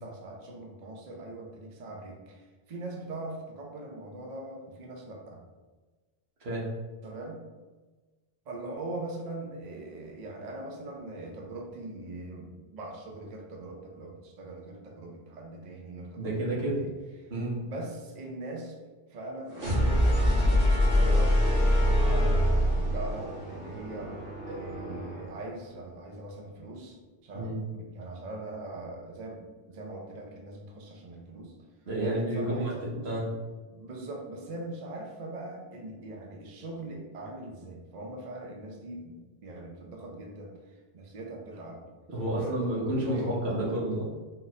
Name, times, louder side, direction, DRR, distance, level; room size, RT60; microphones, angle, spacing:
voice 1, 0.0-5.4 7.0-7.4 8.5-16.9 17.2-17.3 17.6-18.7 19.1-20.1 20.4-21.4 22.0-24.2 24.5-27.0 27.2-29.4 29.7-31.5 32.0-33.1 33.7-41.8 42.3-43.3, right 2 dB, 50° right, 0 dB, 0.7 m, -41 dB
voice 2, 16.2-16.8 17.3-17.6 27.3-27.6 31.9-32.8 33.0-33.3 42.1-44.0, right 1 dB, 85° right, -5 dB, 1.3 m, -30 dB
sound 1, 19.5-25.4, equal, 65° right, 1.6 m, -25 dB
3.8 x 2.4 x 4.1 m, 1.3 s
omnidirectional pair, 1.0 m